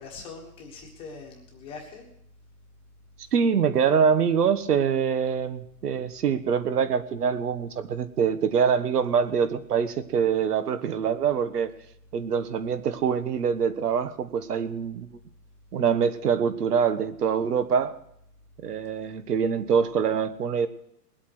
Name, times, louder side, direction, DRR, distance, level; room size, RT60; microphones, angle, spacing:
voice 1, 0.0-2.1, left 4 dB, 10° left, 0 dB, 1.4 m, -42 dB
voice 2, 3.3-11.7 12.1-15.1 15.7-18.0 18.6-20.7, right 7 dB, 70° right, 12 dB, 1.4 m, -24 dB
20.0 x 8.4 x 6.3 m, 0.77 s
hypercardioid pair, 175°, 48 cm